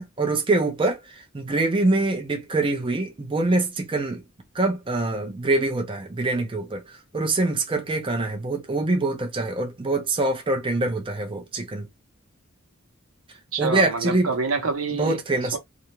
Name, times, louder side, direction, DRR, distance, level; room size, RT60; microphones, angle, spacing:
voice 1, 0.0-4.2 4.5-11.9 13.6-14.3 14.9-15.6, right 2 dB, 25° right, 0.5 m, -24 dB
voice 2, 13.5-15.2, right 4 dB, 75° right, 0.8 m, -26 dB
2.4 x 2.1 x 2.9 m
head